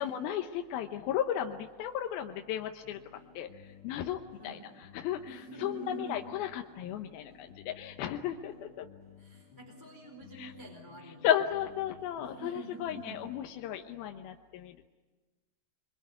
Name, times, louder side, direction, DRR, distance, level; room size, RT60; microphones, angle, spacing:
voice 1, 0.0-8.9 10.4-10.5 11.2-14.9, left 10 dB, 80° left, 5 dB, 2.8 m, -35 dB
sound 1, 2.8-13.4, left 6 dB, 40° left, 2.6 m, -55 dB
voice 2, 5.3-6.2 9.2-11.3 12.2-13.2, right 2 dB, 5° right, -1 dB, 4.0 m, -46 dB
25.5 x 23.5 x 9.5 m, 1.3 s
omnidirectional pair, 4.3 m